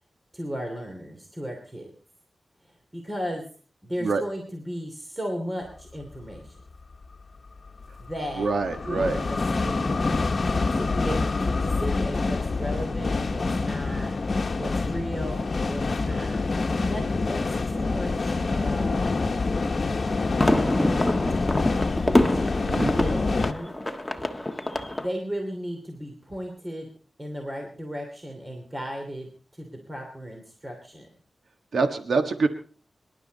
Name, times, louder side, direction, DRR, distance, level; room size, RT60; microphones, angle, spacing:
voice 1, 0.3-1.9 2.6-3.5 3.8-6.6 8.0-8.6 8.9-10.1 10.7-16.4 16.9-19.3 21.8-22.7 22.9-23.8 25.0-26.9 27.2-31.1, equal, 20° right, 2 dB, 2.9 m, -35 dB
sound 1, 6.1-6.2 7.7-23.5, left 3 dB, 55° left, 1.2 m, -26 dB
voice 2, 8.4-9.2 22.7-22.9 31.7-32.5, right 4 dB, 80° right, 7 dB, 1.5 m, -25 dB
sound 2, 20.0-25.1, left 1 dB, 10° left, 1.5 m, -25 dB
25.5 x 11.5 x 4.1 m, 0.41 s
wide cardioid pair, 105°, 0 cm